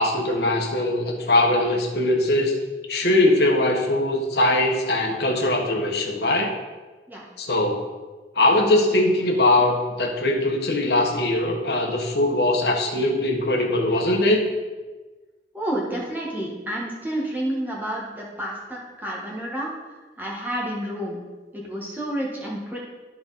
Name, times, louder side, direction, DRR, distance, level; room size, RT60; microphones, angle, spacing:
voice 1, 0.0-2.5 2.9-6.5 7.4-7.8 8.4-14.4, left 1 dB, 65° left, 1 dB, 1.3 m, -21 dB
voice 2, 15.5-19.7 20.2-21.2 21.5-22.8, right 1 dB, 10° right, -3 dB, 1.5 m, -30 dB
12.5 x 4.4 x 4.1 m, 1.3 s
head